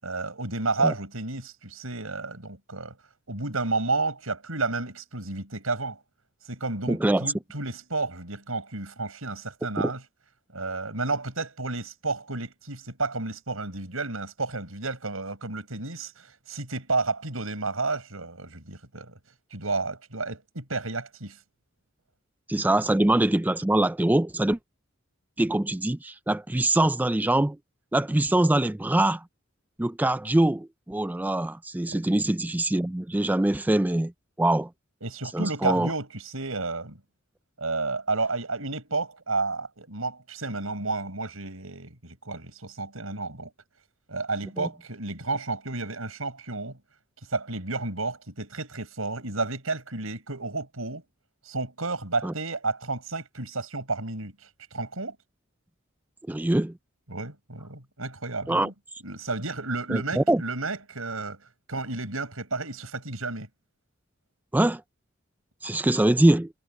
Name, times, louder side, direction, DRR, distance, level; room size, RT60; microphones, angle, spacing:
voice 1, 0.0-3.0 3.3-6.0 6.5-10.0 10.5-19.2 19.5-21.4 31.9-32.0 35.0-37.0 37.6-43.5 44.1-46.8 47.3-51.0 51.4-54.3 54.7-55.2 57.1-58.7 59.0-61.4 61.7-63.5, right 3 dB, 90° right, 5.5 m, -31 dB
voice 2, 6.9-7.3 22.5-24.6 25.4-27.6 27.9-29.2 29.8-34.1 34.4-34.7 35.3-35.9 44.6-44.7 52.2-52.3 56.3-56.7 58.5-58.7 59.9-60.4 64.5-64.8 65.6-66.5, right 1 dB, 10° right, 0.3 m, -23 dB
head